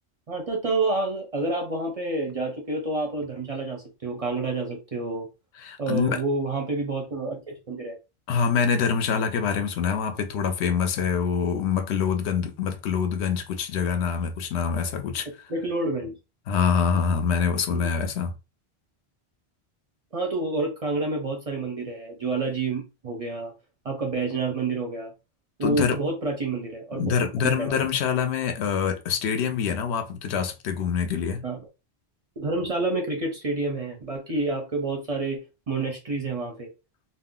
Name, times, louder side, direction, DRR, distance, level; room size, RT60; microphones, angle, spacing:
voice 1, 0.3-5.3 5.8-8.0 15.5-16.2 17.7-17.9 20.1-23.5 23.8-25.1 25.6-27.1 27.4-27.8 31.4-31.6 32.4-35.4 35.7-36.7, right 3 dB, 45° right, 0.5 m, -28 dB
voice 2, 5.6-6.2 8.3-15.3 16.5-18.3 25.6-26.0 27.0-31.4, left 6 dB, 85° left, 0.9 m, -25 dB
2.4 x 2.1 x 3.6 m
omnidirectional pair, 1.1 m